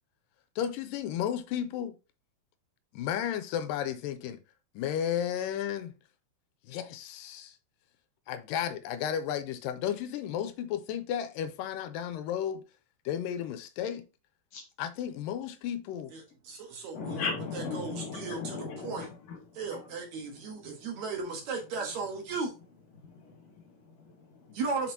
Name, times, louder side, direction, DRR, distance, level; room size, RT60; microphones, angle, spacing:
voice 1, 0.6-1.9 2.9-4.4 4.8-5.9 6.7-7.6 8.3-12.6 13.1-14.1 14.8-16.1, left 9 dB, 85° left, 2.3 m, -33 dB
voice 2, 16.1-17.2 17.5-19.1 19.5-22.5 24.5-24.9, right 4 dB, 65° right, 2.4 m, -36 dB
voice 3, 16.9-19.4 19.7-19.9 20.5-20.7 23.0-24.6, left 5 dB, 60° left, 2.1 m, -38 dB
6.1 x 5.8 x 2.8 m
omnidirectional pair, 3.9 m